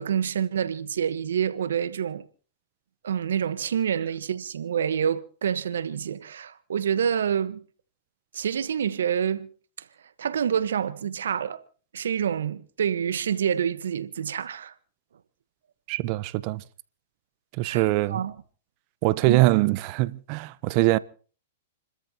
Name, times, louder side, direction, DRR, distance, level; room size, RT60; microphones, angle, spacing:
voice 1, 0.0-2.2 3.0-7.6 8.3-9.5 10.2-11.6 11.9-14.7 17.6-18.3 19.3-19.4, right 8 dB, 80° right, 1.2 m, -27 dB
voice 2, 15.9-16.6 17.6-18.2 19.0-21.0, right 19 dB, 45° right, 0.8 m, -23 dB
29.5 x 13.5 x 2.9 m
hypercardioid pair, 120°, 0 cm